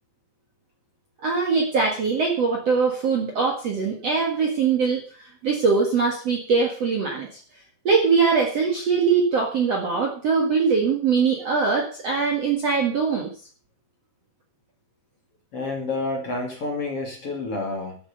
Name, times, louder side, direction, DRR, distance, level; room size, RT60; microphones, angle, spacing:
voice 1, 1.2-5.0 5.4-7.4 7.8-13.3, right 5 dB, 50° right, 1 dB, 2.2 m, -22 dB
voice 2, 15.5-18.0, left 2 dB, 40° left, 1 dB, 3.0 m, -29 dB
12.5 x 8.8 x 6.8 m, 0.41 s
omnidirectional pair, 5.1 m